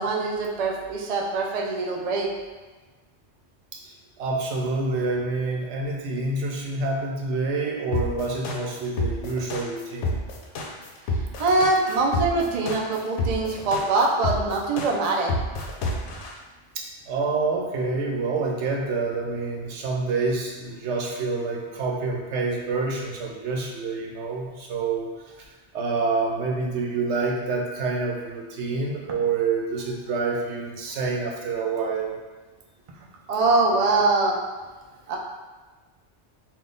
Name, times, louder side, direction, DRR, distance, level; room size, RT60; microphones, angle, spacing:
voice 1, 0.0-2.3 11.4-15.3 33.3-34.4 35.1-35.2, right 3 dB, 50° right, -1 dB, 0.5 m, -23 dB
voice 2, 4.2-10.2 16.7-25.1 25.7-32.2, right 3 dB, 85° right, 0 dB, 0.9 m, -27 dB
sound 1, 7.9-16.3, left 2 dB, 80° left, 0.9 m, -28 dB
3.6 x 2.3 x 3.8 m, 1.3 s
omnidirectional pair, 1.1 m